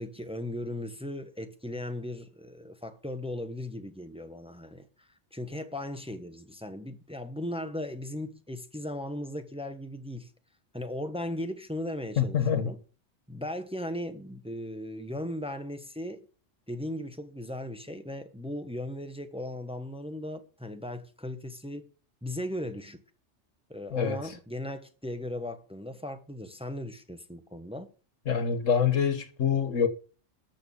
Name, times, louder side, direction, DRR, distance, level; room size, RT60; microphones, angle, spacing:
voice 1, 0.0-10.3 10.7-12.8 13.3-16.2 16.7-21.9 22.2-23.0 23.7-27.9, left 1 dB, 5° right, 1.1 m, -37 dB
voice 2, 12.2-12.7 23.9-24.2 28.3-29.9, left 7 dB, 90° left, 1.7 m, -25 dB
13.5 x 6.6 x 7.0 m
omnidirectional pair, 1.3 m